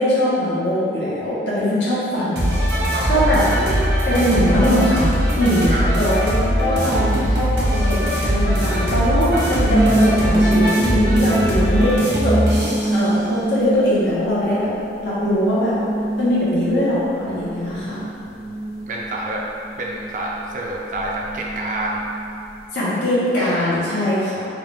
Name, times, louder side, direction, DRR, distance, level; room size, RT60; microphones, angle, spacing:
voice 1, 0.0-2.5 3.1-11.9 12.2-12.6 12.9-14.7 15.0-15.7 16.2-18.0 22.7-24.5, equal, 85° left, -9 dB, 1.2 m, -21 dB
sound 1, 2.4-12.9, equal, 75° right, 1.0 m, -20 dB
voice 2, 2.9-3.3 5.7-5.9 17.8-19.4 19.8-22.0, right 1 dB, 45° right, -2 dB, 0.4 m, -28 dB
sound 2, 3.2-5.1 5.9-6.3 7.2-10.4 11.2-11.6, equal, 15° left, 0.5 m, -35 dB
sound 3, 9.6-22.7, right 1 dB, 50° left, 0.9 m, -24 dB
3.6 x 2.5 x 3.4 m, 2.5 s
head